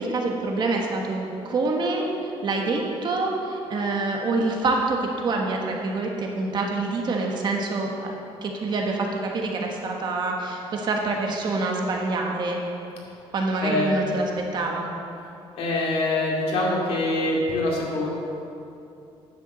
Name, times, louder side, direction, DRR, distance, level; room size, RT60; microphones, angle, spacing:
voice 1, 0.0-2.0 2.4-8.1 8.4-12.6 13.3-14.3 14.5-14.9, right 3 dB, 45° right, 0 dB, 1.5 m, -26 dB
voice 2, 13.6-14.1 15.6-18.1, left 2 dB, 70° left, -3 dB, 2.7 m, -24 dB
9.8 x 7.2 x 7.0 m, 2.7 s
cardioid pair, 145°, 11 cm